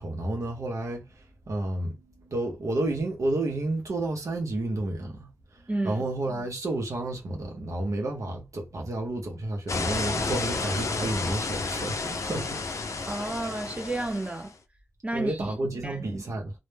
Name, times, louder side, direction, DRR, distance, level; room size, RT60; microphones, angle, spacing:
voice 1, 0.0-12.6 15.1-16.5, right 2 dB, 85° right, 0.6 m, -31 dB
voice 2, 5.7-6.0 13.1-14.5 15.0-15.5 15.8-16.3, right 2 dB, 25° right, 0.7 m, -31 dB
sound 1, 9.7-14.5, left 3 dB, 75° left, 0.4 m, -31 dB
2.1 x 2.0 x 3.1 m
cardioid pair, 45°, 5 cm